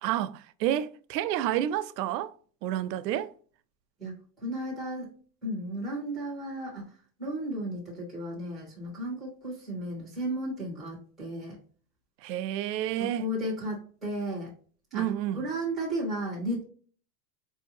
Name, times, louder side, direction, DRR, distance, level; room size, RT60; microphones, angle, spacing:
voice 1, 0.0-2.3 2.6-3.3 12.2-13.3 14.9-15.5, right 12 dB, 80° right, 0.6 m, -30 dB
voice 2, 4.0-5.1 5.4-6.9 7.2-11.6 13.0-14.5 14.9-15.0 15.3-16.7, right 1 dB, ahead, 0.3 m, -34 dB
4.4 x 2.8 x 2.6 m
supercardioid pair, 160°, 49 cm